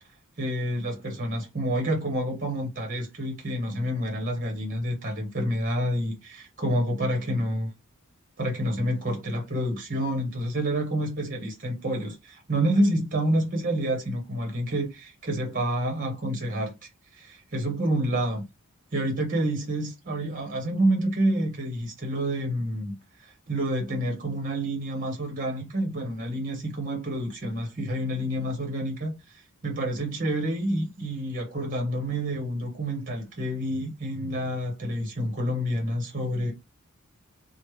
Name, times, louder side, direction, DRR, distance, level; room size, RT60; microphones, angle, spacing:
voice 1, 0.4-7.7 8.4-18.4 18.9-23.0 23.2-36.5, right 1 dB, 40° right, 0.9 m, -28 dB
3.1 x 2.1 x 3.1 m
head